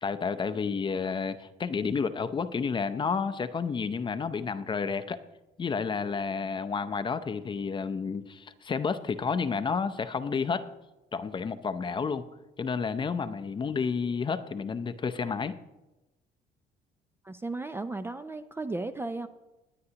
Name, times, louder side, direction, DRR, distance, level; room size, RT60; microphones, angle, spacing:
voice 1, 0.0-5.2 5.6-10.7 11.1-12.2 12.6-15.6, left 5 dB, 30° left, 11 dB, 0.6 m, -30 dB
voice 2, 17.2-19.3, right 2 dB, 15° right, 10 dB, 0.4 m, -35 dB
19.5 x 9.1 x 2.9 m, 1.0 s
cardioid pair, 110°, 17 cm